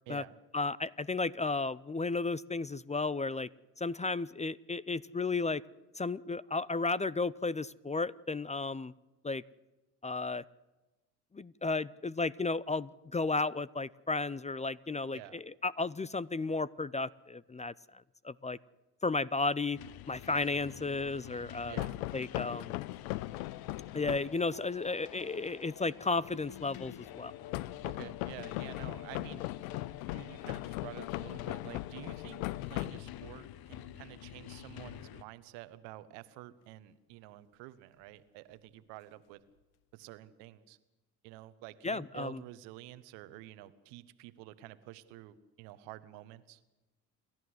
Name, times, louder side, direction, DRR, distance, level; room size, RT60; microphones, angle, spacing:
voice 1, 0.5-3.5 3.8-5.6 6.0-8.9 9.2-9.4 10.0-10.4 11.3-18.6 19.0-19.8 20.1-21.8 22.1-22.7 23.9-27.3 41.8-42.4, left 3 dB, 15° left, 21 dB, 0.6 m, -33 dB
sound 1, 19.7-35.2, left 12 dB, 60° left, 1.0 m, -48 dB
voice 2, 21.7-22.0 27.8-29.4 30.1-39.4 39.9-40.8 41.2-46.6, right 16 dB, 75° right, 15 dB, 1.2 m, -49 dB
sound 2, 21.8-24.4 27.5-33.4, left 18 dB, 80° left, 0.6 m, -39 dB
28.5 x 12.5 x 8.0 m, 1.1 s
hypercardioid pair, 50°, 42 cm